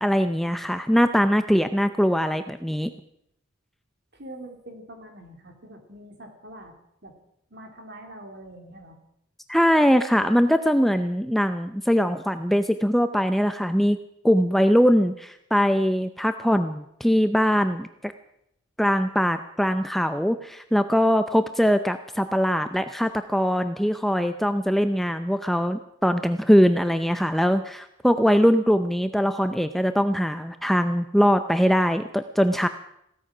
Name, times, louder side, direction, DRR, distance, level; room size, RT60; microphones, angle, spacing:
voice 1, 0.0-2.9 9.5-14.0 14.2-18.1 18.8-32.7, equal, ahead, 8 dB, 0.5 m, -22 dB
voice 2, 4.1-6.7 7.0-7.2 7.5-9.0, right 1 dB, 55° right, 4 dB, 2.9 m, -44 dB
16.5 x 13.5 x 6.0 m, 0.77 s
head